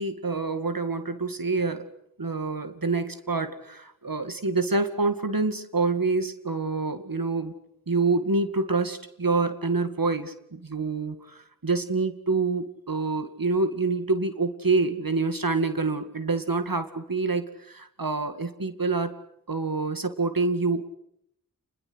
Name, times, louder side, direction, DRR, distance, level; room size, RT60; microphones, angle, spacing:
voice 1, 0.0-1.8 2.2-7.5 7.9-19.1 19.5-20.8, right 3 dB, 80° right, 9 dB, 2.2 m, -27 dB
29.0 x 21.5 x 8.1 m, 0.73 s
wide cardioid pair, 40°, 34 cm